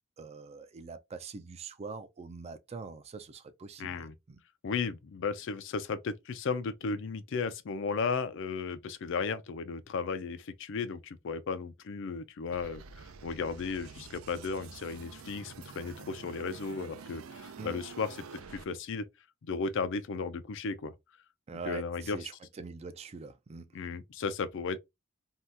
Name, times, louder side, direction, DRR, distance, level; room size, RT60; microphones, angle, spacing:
voice 1, 0.2-4.4 17.6-17.8 21.5-23.8, right 4 dB, 30° right, 0.4 m, -44 dB
voice 2, 3.8-4.1 4.6-19.1 19.4-20.9 21.7-22.2 23.7-24.8, left 5 dB, 60° left, 0.4 m, -35 dB
sound 1, 12.5-18.6, right 5 dB, 85° right, 0.5 m, -48 dB
2.7 x 2.3 x 3.3 m
head